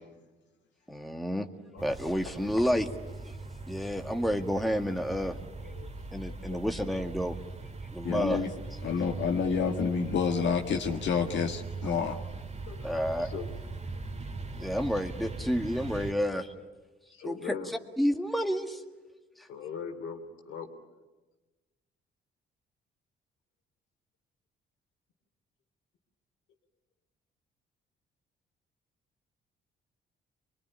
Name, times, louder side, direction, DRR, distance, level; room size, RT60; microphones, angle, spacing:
voice 1, 0.9-1.5 1.8-2.9 3.3-3.4 3.7-5.4 6.1-7.4 7.9-8.4 12.8-13.3 14.6-16.5 17.3-17.6 18.0-18.8, equal, ahead, 4 dB, 1.8 m, -30 dB
sound 1, 1.8-16.1, right 3 dB, 35° right, 2.1 m, -40 dB
voice 2, 3.8-4.1 5.7-5.9 6.3-6.6 8.8-9.6 12.1-12.2 12.7-12.9 13.2-13.5 13.9-14.0 14.5-14.6 17.1-17.7 19.5-20.7, left 6 dB, 85° left, 5 dB, 3.1 m, -42 dB
voice 3, 8.0-8.5 8.8-12.2, left 6 dB, 65° left, 2 dB, 1.8 m, -28 dB
24.5 x 21.5 x 9.9 m, 1.2 s
cardioid pair, 90°, 20 cm